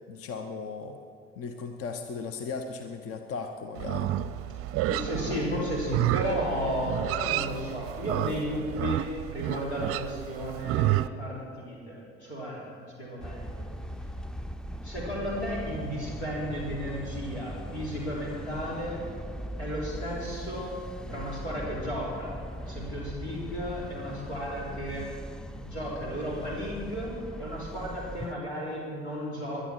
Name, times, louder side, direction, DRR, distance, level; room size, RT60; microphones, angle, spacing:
voice 1, 0.1-1.0 1.4-4.1, left 5 dB, 45° left, 7 dB, 1.0 m, -37 dB
Livestock farm animals working animals, 3.8-11.1, right 14 dB, 45° right, 0.6 m, -30 dB
voice 2, 4.9-9.0 9.3-13.7 14.8-19.0 19.6-25.1 25.6-29.6, equal, 85° left, -5 dB, 3.8 m, -34 dB
sound 1, 13.2-28.3, equal, ahead, 0.5 m, -40 dB
21.5 x 11.0 x 4.5 m, 2.2 s
figure-of-eight pair, 60°, 32 cm